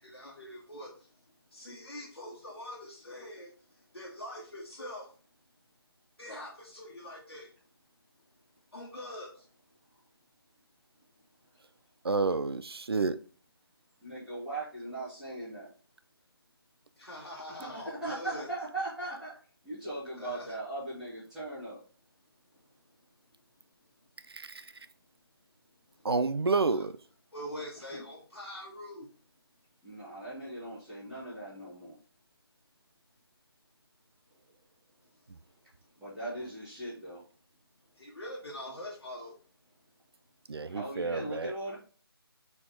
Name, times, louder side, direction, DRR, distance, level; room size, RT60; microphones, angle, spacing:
voice 1, 0.1-0.9 1.5-3.5 3.9-5.0 6.2-7.5 8.7-9.3 17.0-18.5 20.2-20.5 26.7-26.8 27.3-29.0 38.0-39.3, left 1 dB, 75° left, 1.3 m, -43 dB
voice 2, 12.0-13.2 26.0-26.9 40.5-41.5, right 4 dB, 75° right, 0.4 m, -29 dB
voice 3, 14.0-15.7 17.6-19.3 19.6-21.8 27.9-28.0 29.8-32.0 36.0-37.2 40.7-41.7, right 2 dB, 5° right, 1.0 m, -39 dB
4.1 x 3.8 x 2.9 m
figure-of-eight pair, 155°, 13 cm